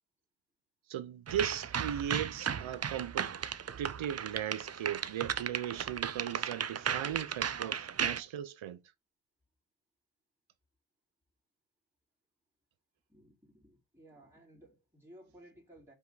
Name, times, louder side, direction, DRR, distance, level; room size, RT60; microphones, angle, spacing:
voice 1, 0.9-3.3 3.8-8.8, right 10 dB, 75° right, 0.9 m, -37 dB
sound 1, 1.3-8.2, right 7 dB, 35° right, 0.6 m, -35 dB
voice 2, 13.1-15.9, right 1 dB, 5° right, 3.2 m, -58 dB
5.2 x 4.8 x 4.1 m
cardioid pair, 100°, 47 cm